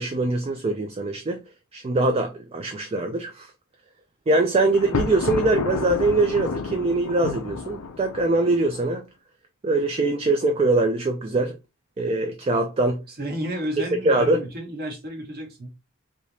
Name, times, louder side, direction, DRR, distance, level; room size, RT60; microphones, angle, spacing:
voice 1, 0.0-1.4 1.7-3.5 4.3-9.0 9.6-11.5 12.0-13.0 14.1-14.4, right 2 dB, 30° right, 0.3 m, -23 dB
Thunder, 4.7-8.9, left 4 dB, 85° left, 0.5 m, -30 dB
voice 2, 13.1-15.7, right 1 dB, 45° right, 1.1 m, -32 dB
3.4 x 2.8 x 2.6 m
head